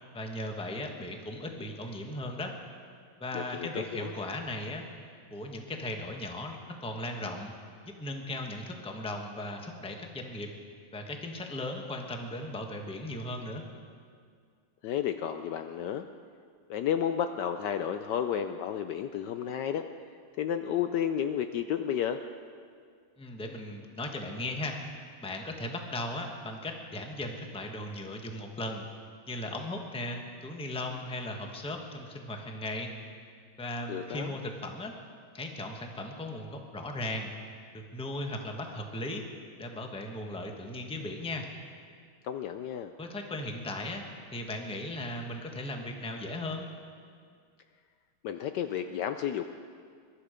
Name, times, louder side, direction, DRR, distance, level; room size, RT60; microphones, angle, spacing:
voice 1, 0.1-2.5 3.2-4.8 5.3-7.5 8.0-10.5 10.9-13.6 23.2-24.8 25.2-28.9 29.3-32.9 33.6-34.9 35.3-37.3 37.7-39.2 39.6-41.5 43.0-44.0 44.3-46.7, left 1 dB, 5° left, 3 dB, 0.9 m, -37 dB
voice 2, 3.3-4.1 14.8-16.1 16.7-19.9 20.4-22.2 33.9-34.3 42.2-42.9 48.2-49.4, left 9 dB, 70° left, 8 dB, 1.1 m, -32 dB
22.5 x 12.0 x 5.0 m, 2.1 s
omnidirectional pair, 2.2 m